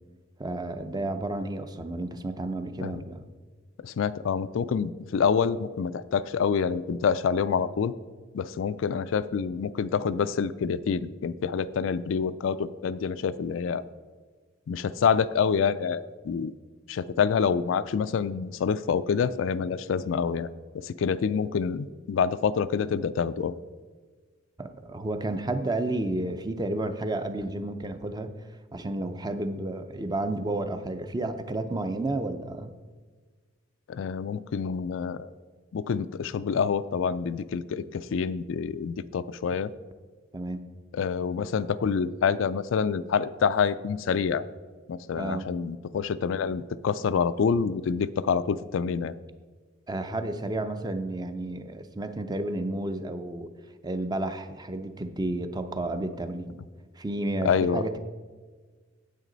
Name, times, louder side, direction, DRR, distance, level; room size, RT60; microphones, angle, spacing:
voice 1, 0.4-3.3 24.6-28.4 28.7-32.7 40.3-40.7 45.2-45.5 49.9-53.5 53.8-56.6 57.0-58.0, right 2 dB, 20° right, 9 dB, 0.5 m, -31 dB
voice 2, 3.8-7.9 8.3-13.8 14.7-16.5 16.9-20.5 20.7-23.5 33.9-35.3 35.7-39.7 40.9-44.4 44.9-49.1 57.4-57.9, left 6 dB, 75° left, 14 dB, 0.4 m, -27 dB
9.2 x 8.4 x 3.9 m, 1.4 s
head